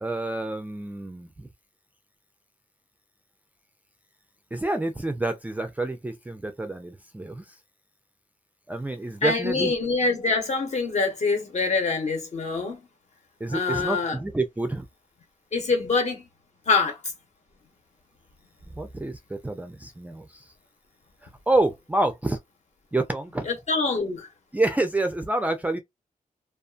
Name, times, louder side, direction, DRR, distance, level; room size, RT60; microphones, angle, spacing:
voice 1, 0.0-1.5 4.5-7.6 8.7-9.7 13.4-14.9 18.7-20.5 21.2-22.4 22.9-23.5 24.5-25.8, right 2 dB, 10° right, 0.3 m, -28 dB
voice 2, 9.2-12.8 13.5-14.2 15.5-16.3 16.7-17.0 23.5-24.3, left 4 dB, 55° left, 1.0 m, -25 dB
2.5 x 2.4 x 2.4 m
wide cardioid pair, 120°, 14 cm